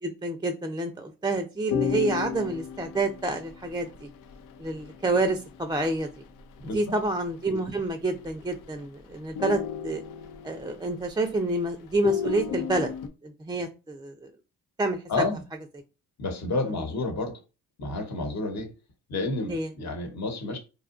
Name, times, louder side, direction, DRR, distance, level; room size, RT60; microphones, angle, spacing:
voice 1, 0.0-4.1 4.6-6.1 6.7-10.0 10.4-12.9 13.2-14.1 14.8-15.2 19.5-19.7, right 2 dB, 10° right, 0.5 m, -28 dB
sound 1, 1.7-6.7 7.0-7.1 7.4-7.9 8.2-8.9 9.2-11.5 11.9-13.1, left 8 dB, 70° left, 0.6 m, -33 dB
voice 2, 6.6-6.9 15.1-15.4 16.2-17.4 17.8-18.7 19.1-20.6, left 2 dB, 50° left, 1.1 m, -30 dB
2.7 x 2.3 x 2.5 m
supercardioid pair, 60°, 34 cm